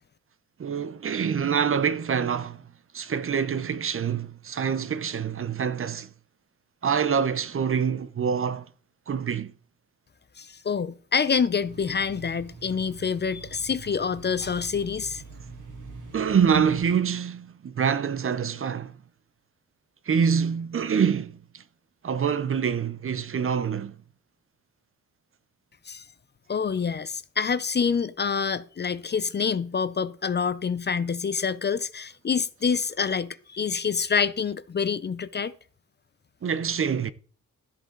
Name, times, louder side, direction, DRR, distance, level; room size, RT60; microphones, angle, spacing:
voice 1, 0.6-2.7 2.9-6.1 6.8-8.7 9.1-9.5 16.1-19.0 20.0-21.6 22.0-24.0 36.4-37.1, right 7 dB, 45° right, 0.6 m, -26 dB
voice 2, 10.4-15.2 25.9-26.0 26.5-35.5, left 6 dB, 35° left, 0.5 m, -27 dB
sound 1, 11.6-16.9, right 4 dB, 80° right, 2.6 m, -44 dB
13.0 x 8.1 x 3.8 m
wide cardioid pair, 130°, 30 cm